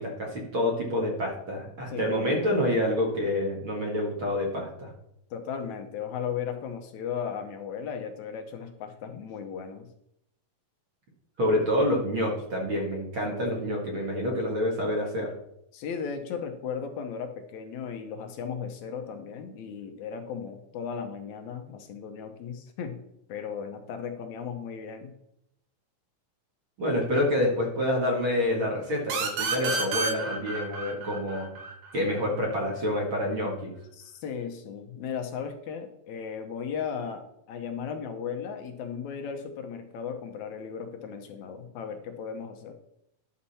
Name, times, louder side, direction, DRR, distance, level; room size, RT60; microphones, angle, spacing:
voice 1, 0.0-4.9 11.4-15.3 26.8-31.5 31.9-33.7, left 1 dB, 45° right, -2 dB, 2.2 m, -27 dB
voice 2, 1.9-2.7 5.3-9.9 13.2-13.4 15.7-23.0 23.3-25.1 34.0-42.7, left 7 dB, 70° left, 5 dB, 2.0 m, -36 dB
sound 1, 29.1-32.5, right 4 dB, 75° right, 2.9 m, -31 dB
11.5 x 6.6 x 4.2 m, 0.76 s
omnidirectional pair, 4.0 m